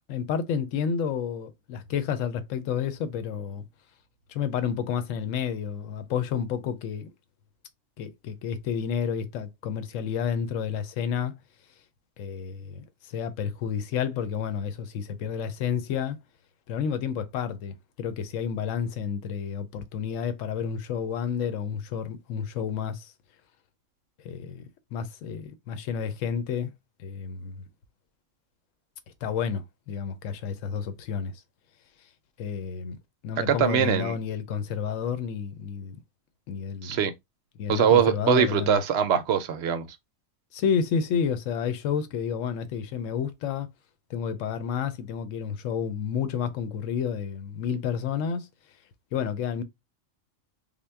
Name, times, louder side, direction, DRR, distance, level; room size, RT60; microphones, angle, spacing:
voice 1, 0.1-3.6 4.3-7.1 8.0-11.3 12.2-16.2 16.7-23.1 24.2-26.7 27.0-27.6 29.2-31.3 32.4-33.0 33.2-36.0 36.5-37.0 37.6-38.8 40.5-43.7 44.1-48.5 49.1-49.6, left 7 dB, 70° left, 1.0 m, -30 dB
voice 2, 33.5-34.2 36.8-37.1 37.7-39.9, right 8 dB, 65° right, 0.7 m, -22 dB
3.6 x 2.2 x 3.3 m
omnidirectional pair, 1.4 m